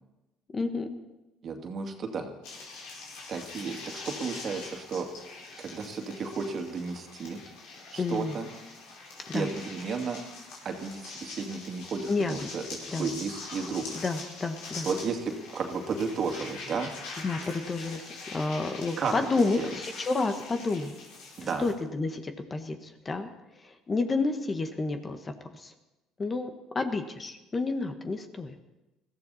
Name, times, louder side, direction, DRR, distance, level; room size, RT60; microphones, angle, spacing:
voice 1, 0.5-1.0 8.0-8.4 9.3-9.5 12.1-12.4 12.9-13.1 13.9-14.9 17.2-20.9 21.4-23.3 23.6-25.7 26.2-28.6, left 3 dB, 30° left, 7 dB, 1.4 m, -30 dB
voice 2, 1.4-2.3 3.3-3.8 4.1-5.1 5.6-7.4 7.9-8.5 9.3-10.2 10.6-12.6 13.0-13.8 14.8-16.9 19.0-19.1 19.6-19.7 21.4-21.6, right 5 dB, 45° right, 4 dB, 2.4 m, -33 dB
sound 1, 2.4-21.7, left 3 dB, 80° left, 5.0 m, -43 dB
21.0 x 14.5 x 4.2 m, 1.0 s
supercardioid pair, 90°, 0 cm